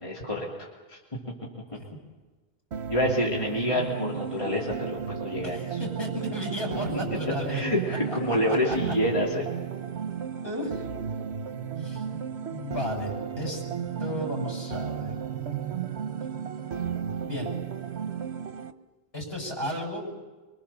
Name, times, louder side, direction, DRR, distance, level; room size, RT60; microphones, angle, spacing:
voice 1, 0.0-1.0 2.9-5.8 7.5-9.5, left 1 dB, 30° left, -4 dB, 3.3 m, -28 dB
sound 1, 2.7-18.7, right 7 dB, 85° right, 1.2 m, -34 dB
voice 2, 5.4-8.4 8.7-8.8 10.4-10.9 11.8-12.0 12.4-13.6 14.0-15.1 17.2-17.5 19.1-20.0, equal, 65° left, -1 dB, 7.5 m, -34 dB
24.5 x 24.0 x 7.1 m, 1.3 s
omnidirectional pair, 1.1 m